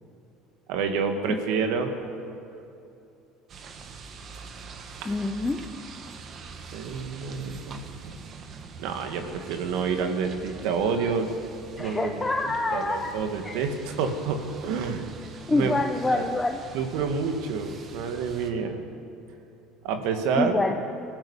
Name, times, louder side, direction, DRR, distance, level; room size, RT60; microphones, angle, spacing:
voice 1, 0.7-1.9 5.0-5.2 6.7-8.2 8.8-11.3 11.8-12.2 12.4-15.1 15.5-15.8 16.1-16.2 16.7-18.8 19.8-20.5, right 5 dB, 75° right, 5 dB, 2.3 m, -28 dB
sound 1, 3.5-18.5, right 5 dB, 45° right, 1.9 m, -44 dB
voice 2, 5.0-5.6 11.8-13.1 13.4-13.6 15.5-16.6 20.3-20.8, left 2 dB, 15° left, 3 dB, 1.2 m, -26 dB
23.5 x 15.0 x 8.5 m, 2.7 s
supercardioid pair, 100°, 0 cm